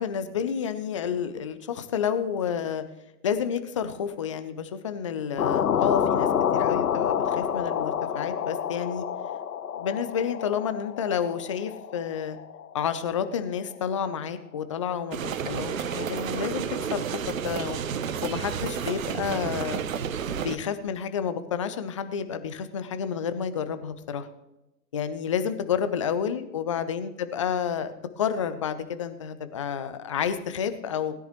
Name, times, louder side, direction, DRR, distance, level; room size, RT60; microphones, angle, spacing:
voice 1, 0.0-2.8 3.2-9.0 9.7-12.4 12.7-16.7 16.9-17.8 18.2-19.8 20.3-24.3 24.9-31.1, left 7 dB, 20° left, 11 dB, 0.4 m, -30 dB
sound 1, 5.4-13.4, left 9 dB, 65° left, 0.8 m, -28 dB
sound 2, 15.1-20.6, right 7 dB, 55° right, 0.9 m, -31 dB
19.0 x 10.0 x 3.0 m, 0.97 s
figure-of-eight pair, 110°, 48 cm